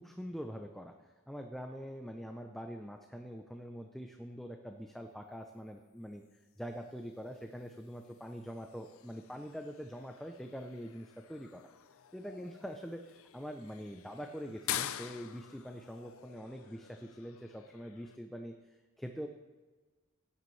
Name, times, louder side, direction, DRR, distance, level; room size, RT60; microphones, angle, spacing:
voice 1, 0.0-11.7 12.1-19.3, equal, ahead, 3 dB, 0.5 m, -44 dB
sound 1, 6.2-18.2, left 11 dB, 65° left, 0.5 m, -47 dB
16.0 x 10.5 x 3.2 m, 1.3 s
head